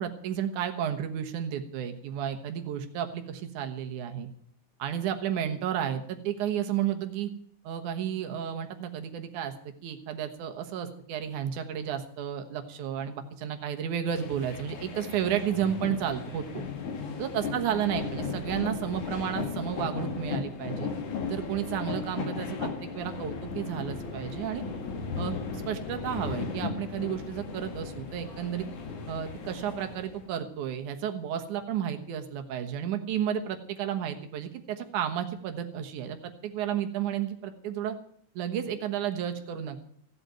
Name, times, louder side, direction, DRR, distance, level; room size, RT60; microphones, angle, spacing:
voice 1, 0.0-4.3 4.8-7.3 7.6-9.5 9.8-16.6 17.2-20.9 21.3-24.6 25.2-25.3 25.7-28.7 29.1-38.0 38.4-39.8, right 9 dB, 85° right, 6 dB, 2.8 m, -32 dB
sound 1, 14.1-30.3, left 5 dB, 80° left, 3.6 m, -36 dB
16.0 x 8.3 x 9.0 m, 0.63 s
omnidirectional pair, 3.4 m